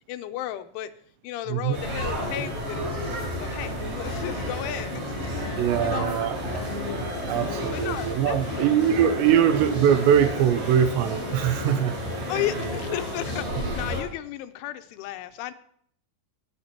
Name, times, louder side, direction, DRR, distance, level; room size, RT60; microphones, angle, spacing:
voice 1, 0.1-0.9 1.2-5.3 5.8-6.3 7.7-8.8 9.3-9.4 12.3-15.5, left 13 dB, 85° left, 10 dB, 3.1 m, -34 dB
sound 1, 1.7-14.0, equal, 55° right, 8.0 m, -31 dB
voice 2, 5.6-6.4 7.2-12.3, right 9 dB, 80° right, 10 dB, 2.7 m, -22 dB
20.5 x 8.1 x 2.9 m, 0.66 s
omnidirectional pair, 5.5 m